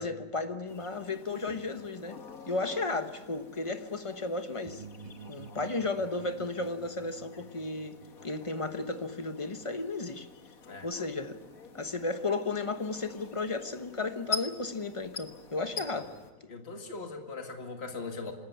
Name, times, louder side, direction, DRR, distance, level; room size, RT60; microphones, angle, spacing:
voice 1, 0.0-2.2 2.5-4.8 5.3-10.3 10.8-11.4 11.7-16.1, left 3 dB, 25° left, 1.0 m, -34 dB
sound 1, 0.7-16.3, left 5 dB, 65° left, 1.9 m, -46 dB
sound 2, 4.6-10.3, right 5 dB, 30° right, 1.3 m, -50 dB
voice 2, 16.5-18.3, left 3 dB, 45° left, 2.3 m, -40 dB
26.0 x 13.5 x 9.5 m
omnidirectional pair, 1.6 m